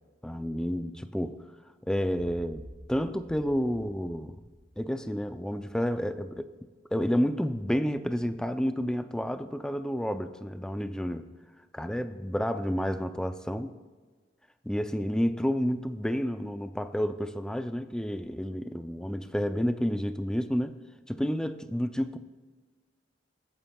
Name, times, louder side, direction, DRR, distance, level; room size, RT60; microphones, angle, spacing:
voice 1, 0.2-1.4 1.8-2.6 2.9-4.4 4.8-6.5 6.9-11.3 11.7-13.7 14.6-20.8 21.1-22.2, equal, 5° left, 9 dB, 0.4 m, -30 dB
sound 1, 2.0-5.8, equal, 45° right, 2.8 m, -50 dB
22.5 x 9.0 x 2.3 m, 1.3 s
head